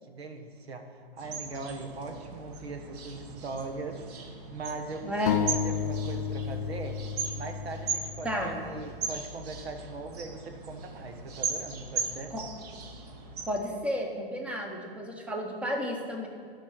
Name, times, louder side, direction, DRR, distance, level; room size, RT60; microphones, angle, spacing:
voice 1, 0.1-7.0 7.3-12.3, right 3 dB, 90° right, 6 dB, 1.4 m, -40 dB
sound 1, 1.2-13.6, right 5 dB, 40° right, 1.0 m, -38 dB
voice 2, 5.0-5.4 8.2-8.6 12.3-12.4 13.5-16.3, equal, 5° right, 2 dB, 0.7 m, -32 dB
sound 2, 5.3-8.9, left 7 dB, 50° left, 0.6 m, -32 dB
11.5 x 5.4 x 6.3 m, 2.2 s
hypercardioid pair, 145°, 30 cm